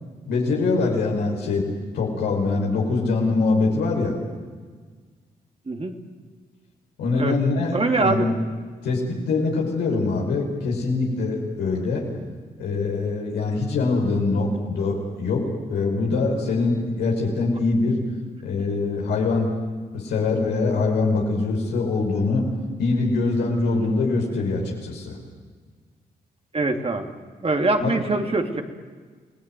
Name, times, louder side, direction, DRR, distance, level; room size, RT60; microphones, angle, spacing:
voice 1, 0.3-1.7 1.9-4.2 7.0-8.3 8.8-12.0 12.6-18.0 18.4-19.6 19.9-22.4 22.8-25.2 27.8-28.0, left 3 dB, 90° left, -1 dB, 5.9 m, -23 dB
voice 2, 5.7-6.0 7.2-7.3 7.7-8.3 26.5-27.1 27.4-28.6, right 3 dB, 35° right, 4 dB, 3.0 m, -23 dB
29.0 x 18.0 x 9.4 m, 1.5 s
supercardioid pair, 55°, 17 cm